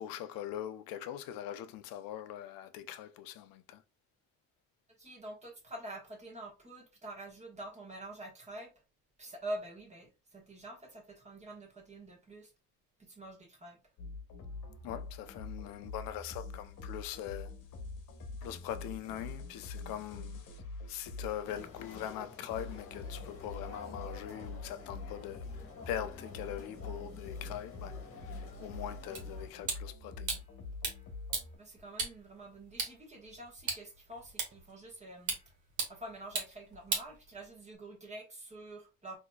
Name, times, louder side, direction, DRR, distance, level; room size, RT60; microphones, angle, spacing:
voice 1, 0.0-3.8 14.8-17.5 18.4-20.4 20.9-30.4, left 11 dB, 70° left, 0.6 m, -42 dB
voice 2, 5.0-8.7 9.2-12.5 13.0-13.8 31.6-35.4 35.9-39.2, right 1 dB, 20° right, 1.3 m, -46 dB
sound 1, 14.0-31.6, left 3 dB, 55° left, 1.0 m, -45 dB
sound 2, 21.4-29.5, left 3 dB, 40° left, 1.2 m, -51 dB
sound 3, 29.2-37.8, right 4 dB, 55° right, 1.5 m, -40 dB
4.0 x 2.8 x 2.2 m
cardioid pair, 120°, 35 cm